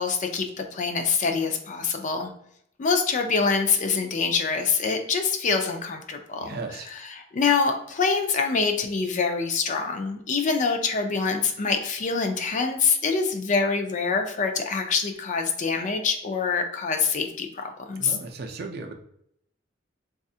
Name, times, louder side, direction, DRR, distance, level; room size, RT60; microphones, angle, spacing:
voice 1, 0.0-2.3 2.8-18.2, left 5 dB, 40° left, 5 dB, 0.4 m, -25 dB
voice 2, 6.4-6.9 18.0-18.9, right 3 dB, 55° right, 4 dB, 0.5 m, -36 dB
4.0 x 2.4 x 2.6 m, 0.72 s
head